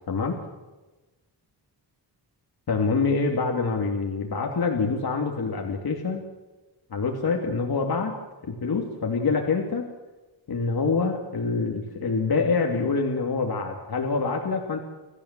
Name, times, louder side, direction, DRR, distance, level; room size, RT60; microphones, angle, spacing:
voice 1, 0.1-0.4 2.7-6.3 6.9-8.1 8.4-9.9 10.5-14.8, left 4 dB, 60° left, 2 dB, 2.8 m, -26 dB
27.0 x 15.0 x 7.5 m, 1.2 s
wide cardioid pair, 145°, 42 cm